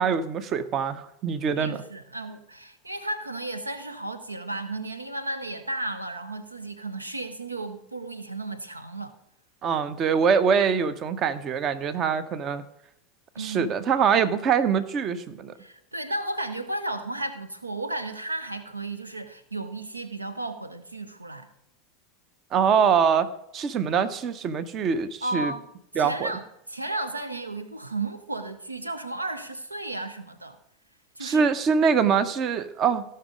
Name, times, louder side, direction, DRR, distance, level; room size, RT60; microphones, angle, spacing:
voice 1, 0.0-1.8 9.6-12.6 13.4-15.5 22.5-25.5 26.0-26.3 31.2-33.0, right 6 dB, 40° right, 14 dB, 0.8 m, -24 dB
voice 2, 1.6-9.1 13.4-13.7 15.6-21.5 25.2-25.7 25.9-26.4 26.7-30.6 31.2-31.5, right 2 dB, 90° right, 12 dB, 0.6 m, -34 dB
16.0 x 5.6 x 5.1 m, 0.79 s
figure-of-eight pair, 80°, 0 cm